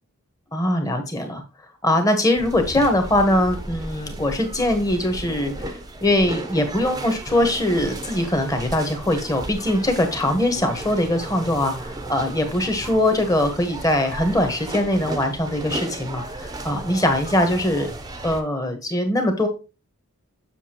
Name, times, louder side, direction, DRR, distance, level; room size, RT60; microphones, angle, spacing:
voice 1, 0.5-1.4 1.8-17.9 18.2-19.5, left 1 dB, 15° left, 5 dB, 1.1 m, -22 dB
sound 1, 2.4-18.4, right 1 dB, 15° right, 0.7 m, -34 dB
7.1 x 6.5 x 2.9 m, 0.29 s
head